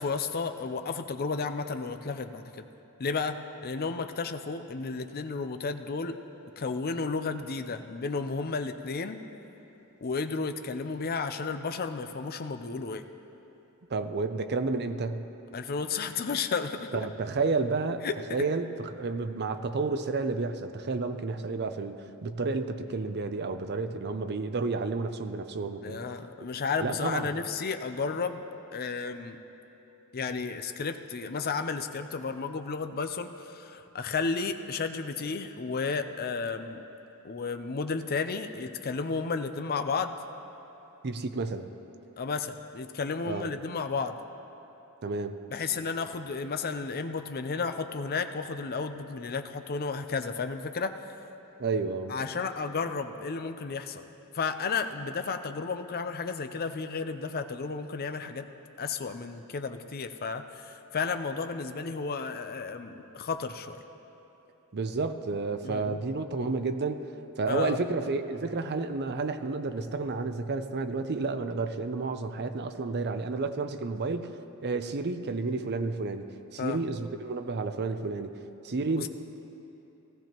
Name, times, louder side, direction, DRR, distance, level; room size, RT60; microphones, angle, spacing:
voice 1, 0.0-2.6 3.0-6.1 6.6-9.2 10.0-13.0 15.5-17.1 18.0-18.4 25.8-28.4 28.7-29.4 30.1-36.8 37.2-40.1 42.2-44.2 45.5-51.1 52.1-54.0 54.3-58.5 58.8-63.8 65.6-66.0 67.5-67.8 76.6-76.8 79.0-79.1, left 4 dB, 45° left, 8 dB, 0.5 m, -33 dB
voice 2, 13.9-15.3 16.9-18.1 18.3-26.0 26.8-27.4 41.0-41.7 43.3-43.5 45.0-45.4 51.6-52.2 64.7-74.3 74.6-79.1, right 3 dB, 50° right, 9 dB, 0.6 m, -31 dB
18.0 x 14.5 x 3.0 m, 3.0 s
head